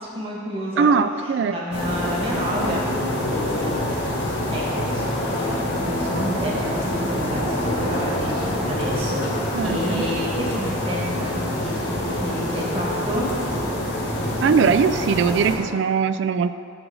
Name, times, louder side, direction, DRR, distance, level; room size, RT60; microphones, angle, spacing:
voice 1, 0.0-0.9 1.2-4.0 4.5-13.4, equal, 30° right, -4 dB, 1.5 m, -30 dB
voice 2, 0.8-1.6 9.5-10.0 14.4-16.5, right 6 dB, 65° right, 12 dB, 0.3 m, -20 dB
sound 1, 1.7-15.6, left 1 dB, 70° left, 1.7 m, -26 dB
7.7 x 3.8 x 6.3 m, 2.3 s
head